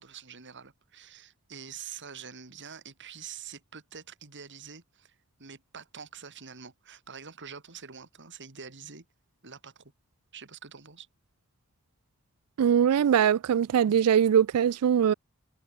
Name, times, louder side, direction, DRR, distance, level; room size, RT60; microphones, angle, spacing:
voice 1, 0.0-9.0 9.4-9.9 10.3-11.1, right 7 dB, 55° right, 2.9 m, -46 dB
voice 2, 12.6-15.1, right 8 dB, 80° right, 0.4 m, -22 dB
head